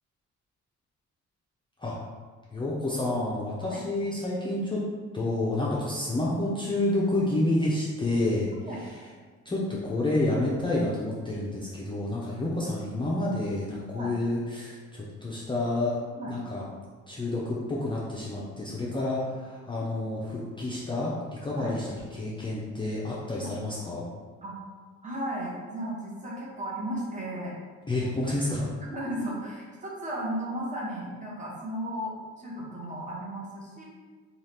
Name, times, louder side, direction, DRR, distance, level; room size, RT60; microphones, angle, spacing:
voice 1, 2.5-4.8 5.1-9.1 9.5-16.0 16.3-16.6 17.1-24.1 27.9-28.7, left 2 dB, 15° left, -6 dB, 0.4 m, -29 dB
voice 2, 25.0-27.6 28.9-33.8, right 1 dB, 25° right, -5 dB, 0.9 m, -35 dB
2.8 x 2.3 x 3.3 m, 1.5 s
cardioid pair, 90°, 30 cm